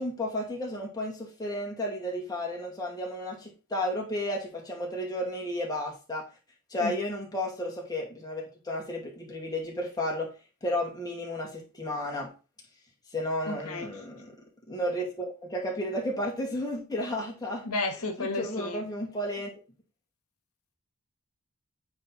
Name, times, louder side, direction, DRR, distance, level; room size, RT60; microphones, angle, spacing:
voice 1, 0.0-6.3 6.7-10.3 10.6-12.3 13.1-14.3 14.7-17.6 18.2-19.5, left 1 dB, 15° left, -1 dB, 2.3 m, -33 dB
voice 2, 13.4-13.9 17.6-18.9, left 3 dB, 75° left, 4 dB, 1.4 m, -32 dB
8.4 x 4.5 x 4.1 m, 0.32 s
head